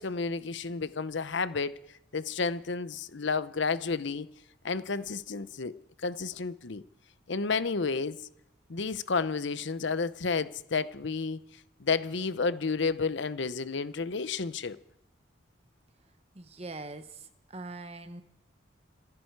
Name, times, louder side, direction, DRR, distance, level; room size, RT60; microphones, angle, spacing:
voice 1, 0.0-1.7 2.1-4.3 4.6-5.7 6.0-6.8 7.3-8.2 8.7-11.4 11.8-14.8, left 4 dB, 65° left, 0.7 m, -31 dB
voice 2, 16.3-18.2, right 2 dB, 30° right, 1.0 m, -42 dB
27.5 x 11.0 x 4.7 m
head